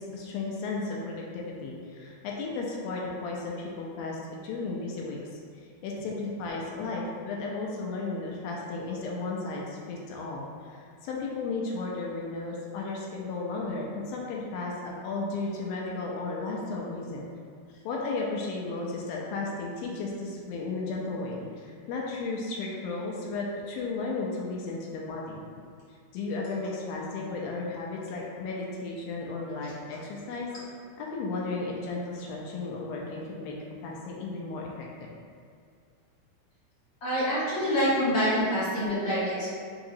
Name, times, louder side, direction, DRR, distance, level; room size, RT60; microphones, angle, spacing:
voice 1, 0.0-5.4 5.8-17.3 17.8-25.4 26.1-30.5 31.0-33.5 33.8-35.1, left 3 dB, 80° left, -3 dB, 2.3 m, -34 dB
voice 2, 37.0-39.5, equal, 60° left, -12 dB, 1.6 m, -26 dB
5.8 x 2.9 x 2.7 m, 2.3 s
omnidirectional pair, 4.4 m